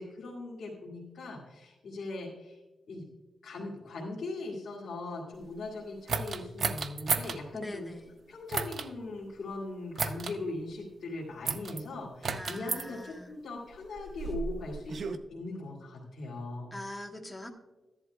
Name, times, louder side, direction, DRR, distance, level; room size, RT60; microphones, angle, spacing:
voice 1, 0.0-2.6 2.9-3.0 3.4-7.9 8.3-15.0 15.3-16.7, left 2 dB, 80° left, -6 dB, 2.0 m, -40 dB
sound 1, 6.1-7.4 8.5-8.9 10.0-10.4 11.5-11.8 12.2-12.8 13.7-15.2, right 5 dB, 55° right, 0.6 m, -33 dB
voice 2, 7.5-8.1 12.3-13.3 16.7-17.5, left 1 dB, 15° left, 3 dB, 1.2 m, -42 dB
14.0 x 11.0 x 2.3 m, 1.1 s
wide cardioid pair, 130°, 0 cm